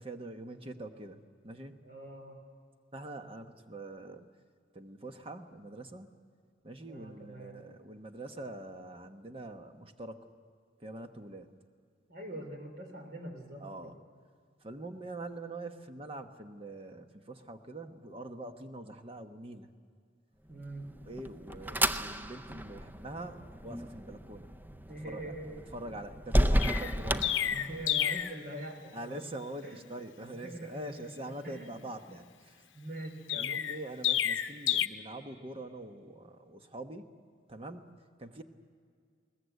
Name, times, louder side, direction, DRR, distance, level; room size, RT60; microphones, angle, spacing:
voice 1, 0.0-1.7 2.9-4.3 4.7-6.1 6.6-10.2 10.8-11.5 13.6-14.0 14.6-19.7 21.1-24.5 25.1-25.2 25.7-27.2 28.9-32.2 33.4-37.0 37.5-38.4, right 2 dB, 30° right, 6 dB, 1.1 m, -44 dB
voice 2, 1.8-2.4 6.9-7.6 12.1-14.0 20.5-20.9 24.9-25.7 27.5-29.2 29.6-29.8 30.3-31.8 32.1-32.2 32.7-33.6, right 1 dB, 50° right, 4 dB, 3.4 m, -44 dB
sound 1, 20.7-28.1, equal, 10° right, 0.5 m, -33 dB
Chirp tweet, 26.6-28.4 33.3-34.9, left 10 dB, 80° left, 0.7 m, -30 dB
21.0 x 19.0 x 8.1 m, 2.2 s
head